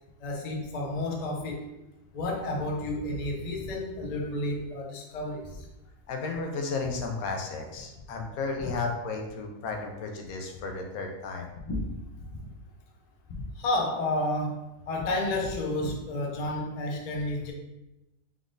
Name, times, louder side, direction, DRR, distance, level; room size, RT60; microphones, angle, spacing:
voice 1, 0.2-1.6 2.1-5.7 11.7-11.9 13.3-17.5, left 1 dB, 50° left, 0 dB, 0.4 m, -31 dB
voice 2, 6.1-11.5, left 4 dB, 85° left, 2 dB, 1.1 m, -33 dB
3.7 x 3.6 x 2.5 m, 0.95 s
omnidirectional pair, 1.5 m